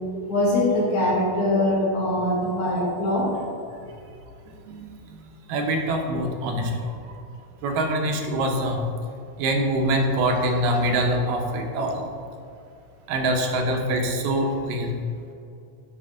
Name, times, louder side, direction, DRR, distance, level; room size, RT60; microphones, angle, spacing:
voice 1, 0.3-3.3, left 1 dB, 60° left, -7 dB, 3.1 m, -22 dB
voice 2, 5.5-6.7 7.6-8.8 9.4-12.0 13.1-15.0, right 1 dB, 85° right, 2 dB, 2.5 m, -24 dB
8.7 x 4.2 x 4.9 m, 2.6 s
omnidirectional pair, 3.7 m